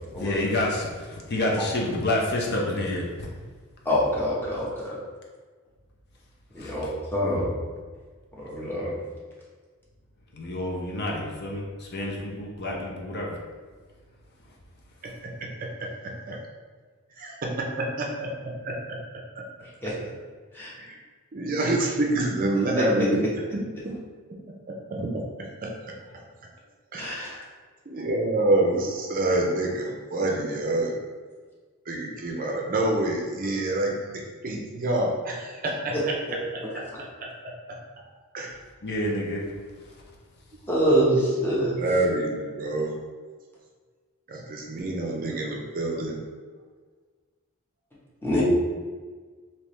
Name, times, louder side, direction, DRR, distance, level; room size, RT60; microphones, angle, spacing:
voice 1, 0.1-3.3 6.6-6.8 10.3-13.4 38.8-39.4, left 1 dB, 50° left, -2 dB, 0.6 m, -28 dB
voice 2, 3.8-5.0 6.5-7.5 8.3-8.9 19.8-19.9 20.5-20.7 22.8-22.9 27.0-27.4 36.3-36.7 40.7-41.7 48.2-48.4, equal, 10° left, -6 dB, 0.8 m, -25 dB
voice 3, 17.2-19.0 19.4-19.5 20.8-21.0 21.3-23.2 23.5-23.9 24.7-25.7 26.1-26.2 26.9-27.3 27.9-31.0 31.9-36.6 37.0-37.3 38.3-38.6 41.8-43.0 44.3-46.2, right 2 dB, 40° right, 0 dB, 0.5 m, -27 dB
3.4 x 2.8 x 3.1 m, 1.5 s
head